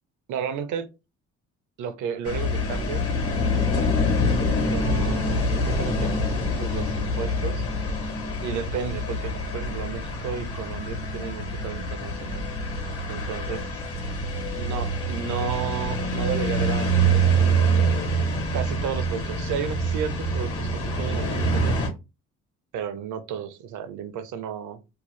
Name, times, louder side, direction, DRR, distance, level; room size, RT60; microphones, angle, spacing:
voice 1, 0.3-0.9 1.8-3.1 4.7-6.1 6.6-7.6 8.4-12.4 13.1-13.7 14.4-17.7 18.5-21.8 22.7-24.8, right 7 dB, 80° right, 0.5 m, -33 dB
sound 1, 2.3-21.9, right 1 dB, 50° left, 1.2 m, -25 dB
2.7 x 2.2 x 3.1 m
cardioid pair, 90°, 30 cm